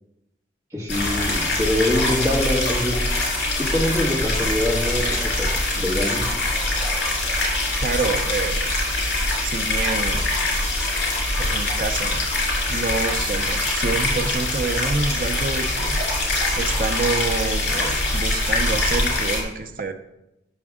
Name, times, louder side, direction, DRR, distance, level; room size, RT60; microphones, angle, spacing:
voice 1, 0.7-3.0 3.6-6.3, left 1 dB, 15° right, -6 dB, 1.8 m, -24 dB
sound 1, 0.9-19.4, left 2 dB, 80° left, 2.1 m, -23 dB
voice 2, 7.8-8.7 9.4-10.3 11.4-12.2 12.7-16.0 16.5-19.9, right 4 dB, 50° right, 6 dB, 0.6 m, -27 dB
7.2 x 5.9 x 3.6 m, 0.88 s
head